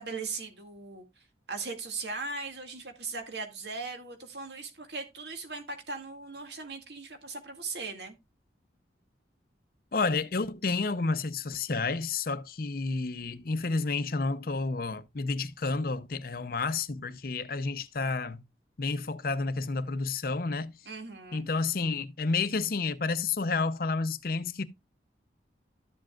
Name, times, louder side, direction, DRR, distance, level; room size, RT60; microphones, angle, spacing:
voice 1, 0.0-8.1 20.9-21.5, right 4 dB, 65° right, 2.2 m, -39 dB
voice 2, 9.9-18.4 18.8-20.7 21.3-24.6, left 4 dB, 55° left, 0.6 m, -30 dB
13.0 x 7.6 x 2.4 m
head